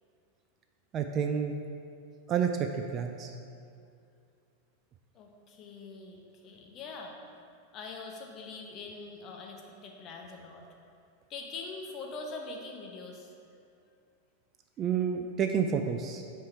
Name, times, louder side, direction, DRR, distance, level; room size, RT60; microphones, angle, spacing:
voice 1, 0.9-1.5 2.3-2.5 2.9-3.3 14.8-16.2, right 7 dB, 30° right, 5 dB, 0.3 m, -29 dB
voice 2, 5.1-7.1 7.7-10.6 11.3-13.3, left 3 dB, 35° left, 1 dB, 0.8 m, -43 dB
5.6 x 4.7 x 4.6 m, 2.4 s
figure-of-eight pair, 90°, 0 cm